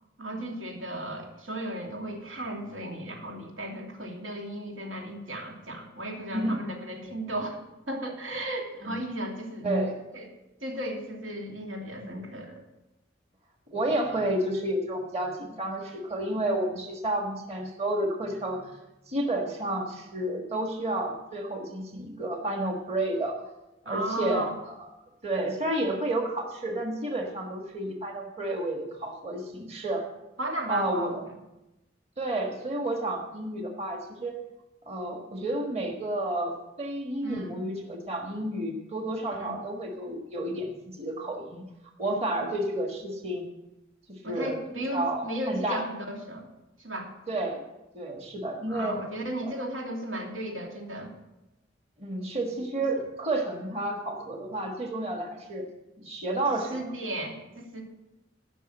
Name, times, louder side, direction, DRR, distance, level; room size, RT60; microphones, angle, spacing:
voice 1, 0.2-9.7 10.1-10.3 10.6-12.6 23.8-24.5 30.4-31.1 37.2-37.6 39.4-39.6 44.2-46.5 46.8-47.1 48.7-51.1 52.9-53.0 56.5-57.8, right 1 dB, 90° right, 0 dB, 2.8 m, -35 dB
voice 2, 9.6-10.0 13.7-18.8 19.1-23.3 23.8-24.9 25.2-30.0 30.7-31.2 32.2-34.3 34.9-41.7 42.0-43.4 44.1-44.6 44.9-45.8 47.3-47.6 47.9-49.0 49.4-49.5 52.0-55.7 56.0-56.7, right 1 dB, 30° right, 1 dB, 1.5 m, -31 dB
15.5 x 6.2 x 7.8 m, 0.97 s
head